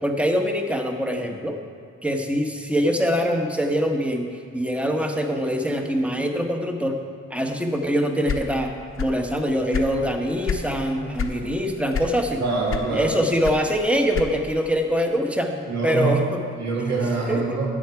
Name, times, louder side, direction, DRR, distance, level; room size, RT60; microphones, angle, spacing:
voice 1, 0.0-1.5 2.0-4.3 4.5-7.0 7.3-12.4 12.9-16.4 17.3-17.7, equal, 5° right, 4 dB, 1.1 m, -24 dB
sound 1, 8.2-9.3 9.5-10.7 11.1-11.4 11.9-12.4 12.7-14.6, left 7 dB, 45° left, 1.0 m, -28 dB
voice 2, 12.4-13.2 15.7-16.1 16.6-17.7, right 4 dB, 65° right, -4 dB, 2.6 m, -24 dB
11.5 x 7.9 x 4.7 m, 2.2 s
cardioid pair, 90°, 30 cm